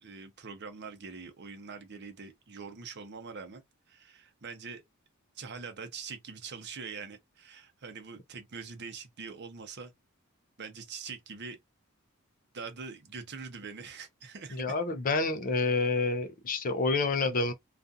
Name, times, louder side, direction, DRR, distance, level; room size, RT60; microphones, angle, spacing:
voice 1, 0.0-3.6 3.9-4.8 5.4-9.9 10.6-11.6 12.5-14.6, right 5 dB, 50° right, 0.6 m, -43 dB
voice 2, 14.5-17.5, left 3 dB, 40° left, 0.4 m, -28 dB
2.4 x 2.4 x 2.6 m
head